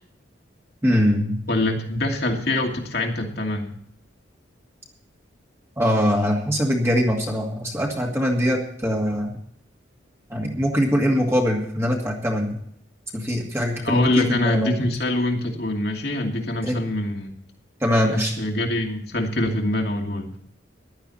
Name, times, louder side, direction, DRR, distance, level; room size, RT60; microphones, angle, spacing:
voice 1, 0.8-1.4 5.8-9.3 10.3-12.6 13.1-14.7 16.6-16.8 17.8-18.3, equal, 15° right, -1 dB, 2.3 m, -22 dB
voice 2, 1.5-3.7 13.8-17.3 18.1-20.4, left 1 dB, 55° left, 2 dB, 2.6 m, -24 dB
15.5 x 12.0 x 4.3 m, 0.66 s
head